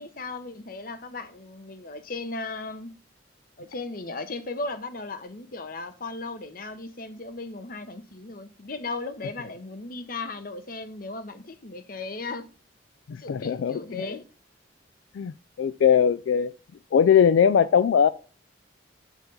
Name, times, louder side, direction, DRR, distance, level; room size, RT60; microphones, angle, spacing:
voice 1, 0.0-2.9 3.6-12.5 13.2-14.3, left 3 dB, 50° left, 0.9 m, -36 dB
voice 2, 13.1-13.8 15.1-15.3 15.6-16.5 16.9-18.1, left 7 dB, 80° left, 0.3 m, -20 dB
8.1 x 6.8 x 3.9 m
head